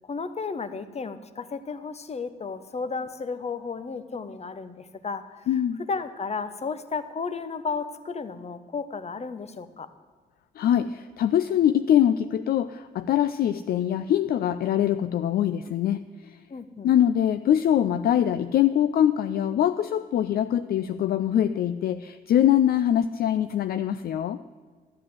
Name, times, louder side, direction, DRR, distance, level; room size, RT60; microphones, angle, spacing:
voice 1, 0.0-5.5 5.9-9.9 16.5-16.9, left 4 dB, 35° left, 12 dB, 0.9 m, -33 dB
voice 2, 5.5-5.8 10.6-16.4 16.8-24.4, left 10 dB, 55° left, 12 dB, 0.4 m, -23 dB
11.5 x 7.7 x 7.6 m, 1.5 s
hypercardioid pair, 45°, 18 cm